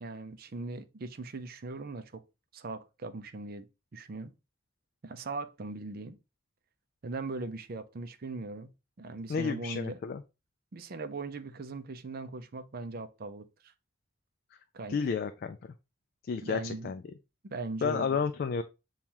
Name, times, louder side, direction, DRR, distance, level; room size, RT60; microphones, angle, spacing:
voice 1, 0.0-2.2 2.5-3.7 3.9-4.3 5.0-6.2 7.0-10.0 10.7-13.7 14.7-15.0 16.4-16.9 17.4-18.2, right 3 dB, 50° right, 0.5 m, -39 dB
voice 2, 9.3-10.2 14.9-15.6 16.2-17.0 17.8-18.6, left 5 dB, 50° left, 0.3 m, -31 dB
7.1 x 2.4 x 2.9 m
head